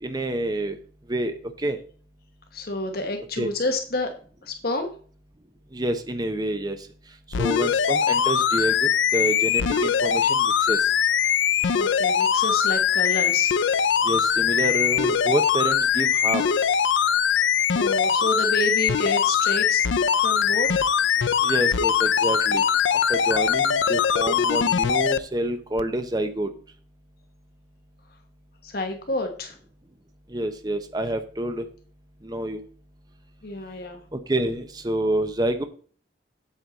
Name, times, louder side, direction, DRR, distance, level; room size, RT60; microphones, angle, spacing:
voice 1, 0.0-0.8 1.1-1.8 3.4-3.5 5.7-6.8 7.4-10.9 14.0-16.4 21.4-22.6 23.1-26.5 30.3-31.6 32.2-32.6 34.1-35.6, right 1 dB, 20° right, 8 dB, 0.8 m, -28 dB
voice 2, 2.5-4.1 4.4-4.9 11.7-13.5 17.3-17.5 17.7-19.8 20.1-20.7 28.6-29.6 33.4-34.0, left 2 dB, 55° left, 4 dB, 1.3 m, -29 dB
sound 1, 7.3-25.2 25.8-25.9, left 7 dB, 85° left, 0.5 m, -22 dB
8.1 x 8.0 x 4.0 m, 0.43 s
head